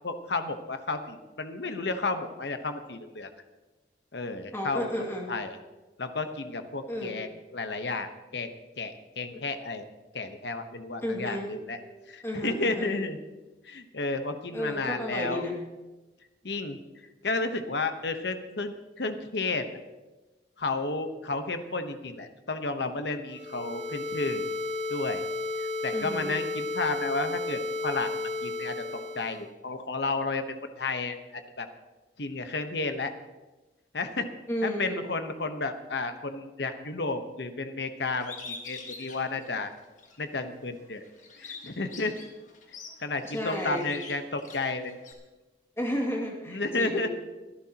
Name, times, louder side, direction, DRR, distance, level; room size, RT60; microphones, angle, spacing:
voice 1, 0.0-3.3 4.1-4.9 5.3-5.6 6.0-9.8 10.1-11.8 12.1-13.2 13.6-15.4 16.4-16.8 17.2-19.7 20.6-24.5 24.9-25.2 25.6-28.1 28.4-31.7 32.2-33.1 33.9-34.3 34.6-39.7 40.2-41.0 41.4-42.1 43.0-44.9 46.5-47.1, left 3 dB, 70° left, 8 dB, 1.1 m, -32 dB
voice 2, 4.5-5.3 6.9-7.2 11.0-11.5 12.2-12.9 14.5-15.6 25.9-26.3 34.5-35.0 43.2-43.9 45.8-47.1, equal, 15° left, -1 dB, 2.4 m, -32 dB
sound 1, 23.3-29.4, left 2 dB, 40° right, 4.9 m, -33 dB
Bird, 38.2-40.2 40.6-45.1, left 4 dB, 45° left, 1.8 m, -45 dB
23.5 x 11.5 x 2.9 m, 1.1 s
head